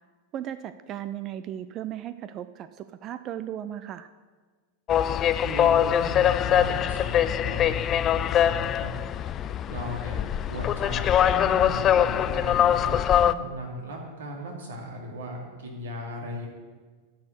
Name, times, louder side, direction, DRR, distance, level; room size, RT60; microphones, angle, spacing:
voice 1, 0.3-4.1, right 11 dB, 35° right, 12 dB, 0.4 m, -36 dB
sound 1, 4.9-13.3, left 10 dB, 30° left, 0.4 m, -23 dB
voice 2, 5.4-8.9 9.7-10.2 10.5-16.5, equal, 60° right, 0 dB, 2.6 m, -37 dB
10.5 x 6.3 x 8.3 m, 1.4 s
figure-of-eight pair, 90°, 0 cm